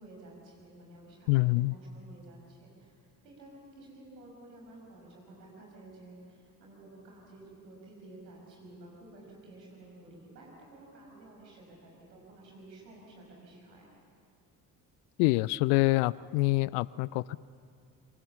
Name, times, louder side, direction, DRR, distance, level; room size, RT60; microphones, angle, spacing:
voice 1, 0.0-3.0 3.2-13.9, right 2 dB, 80° right, -1 dB, 6.0 m, -52 dB
voice 2, 1.3-1.7 15.2-17.4, left 21 dB, 60° left, 22 dB, 0.6 m, -26 dB
26.5 x 24.5 x 7.0 m, 2.3 s
figure-of-eight pair, 45°, 50 cm